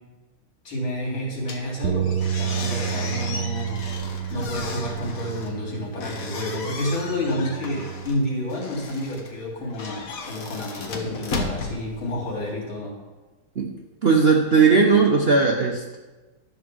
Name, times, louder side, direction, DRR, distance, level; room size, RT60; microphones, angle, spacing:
voice 1, 0.6-3.8 4.3-13.0, left 1 dB, 75° left, -3 dB, 3.9 m, -29 dB
sound 1, 1.4-12.5, left 3 dB, 50° left, 1.3 m, -35 dB
sound 2, 1.8-8.1, right 9 dB, 75° right, 1.4 m, -30 dB
voice 2, 14.0-16.0, right 4 dB, 55° right, 0 dB, 0.7 m, -18 dB
12.0 x 5.8 x 6.2 m, 1.2 s
omnidirectional pair, 2.2 m